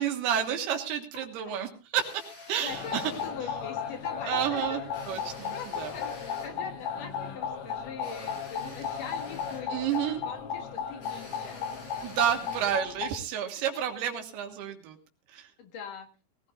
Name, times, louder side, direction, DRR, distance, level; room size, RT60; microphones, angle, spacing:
voice 1, 0.0-2.2 2.5-3.0 4.2-5.9 9.7-10.2 12.0-15.0 15.3-15.5, right 9 dB, 85° right, 4 dB, 3.4 m, -30 dB
sound 1, 2.0-3.4 4.9-6.6 8.0-9.7 11.0-12.8, left 1 dB, 45° left, 6.4 m, -48 dB
voice 2, 2.6-4.8 5.5-11.6 12.0-12.1 15.6-16.1, left 6 dB, 60° left, 5 dB, 2.9 m, -42 dB
sound 2, 2.7-13.1, left 7 dB, 80° left, 1.3 m, -35 dB
20.5 x 16.0 x 2.6 m, 0.31 s
omnidirectional pair, 4.5 m